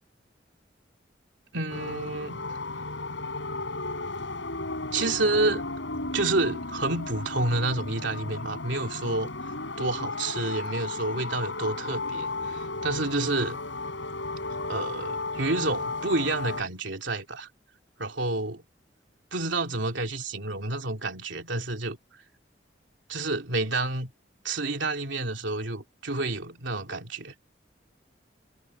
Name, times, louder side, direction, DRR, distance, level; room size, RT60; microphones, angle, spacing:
voice 1, 1.5-2.4 4.9-5.7 6.1-13.6 14.6-17.5 18.0-18.6 19.3-22.0 23.1-24.1 24.4-27.3, right 2 dB, 85° right, 3.0 m, -29 dB
sound 1, 1.7-16.6, left 3 dB, 85° left, 4.8 m, -34 dB
head